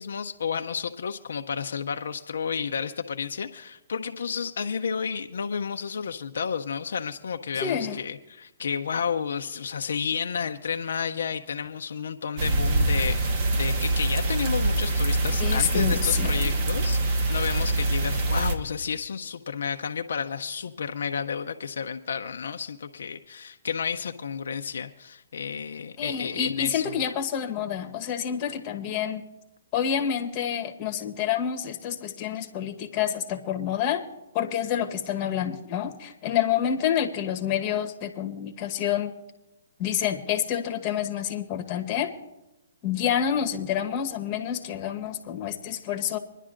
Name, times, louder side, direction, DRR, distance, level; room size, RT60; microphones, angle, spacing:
voice 1, 0.0-27.0 32.4-32.5, left 6 dB, 75° left, 6 dB, 0.5 m, -31 dB
voice 2, 7.6-8.0 15.4-16.4 26.0-29.2 29.7-34.0 34.3-39.1 39.8-42.1 42.8-46.2, left 9 dB, 30° left, 5 dB, 1.1 m, -28 dB
sound 1, 12.4-18.6, right 2 dB, 45° right, 1.3 m, -24 dB
25.5 x 11.0 x 2.5 m, 0.99 s
hypercardioid pair, 140°, 0 cm